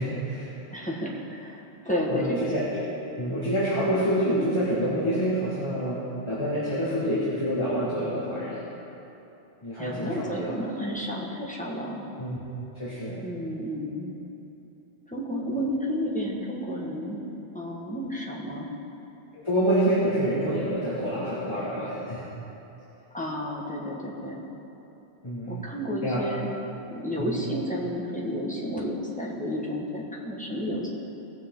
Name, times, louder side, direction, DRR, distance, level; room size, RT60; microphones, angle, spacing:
voice 1, 0.0-0.9 2.1-2.6 3.1-8.6 9.6-10.5 12.2-12.4 12.8-13.2 19.3-22.3 25.2-25.6 26.0-26.3 27.1-27.3, equal, 25° left, -11 dB, 2.0 m, -27 dB
voice 2, 0.7-2.4 9.8-12.0 13.2-14.1 15.1-17.2 17.5-18.7 23.1-24.4 25.5-26.5 26.9-30.9, equal, 5° left, -4 dB, 1.6 m, -31 dB
19.0 x 6.7 x 3.9 m, 3.0 s
omnidirectional pair, 1.1 m